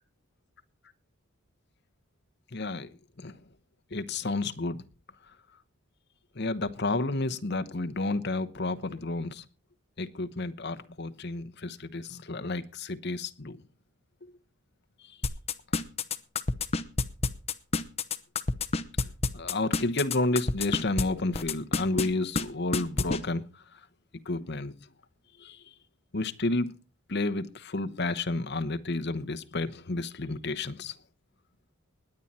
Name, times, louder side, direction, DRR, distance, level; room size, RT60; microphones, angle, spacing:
voice 1, 2.5-2.9 3.2-3.3 3.9-4.8 6.4-9.4 10.0-13.6 19.3-23.4 24.3-24.7 25.4-25.6 26.1-26.7 27.1-30.9, left 2 dB, 50° left, 0.9 m, -31 dB
sound 1, 15.2-21.0 21.3-22.1 22.4-22.5 22.7-23.2, left 3 dB, 30° left, 0.8 m, -27 dB
20.5 x 8.8 x 4.2 m
head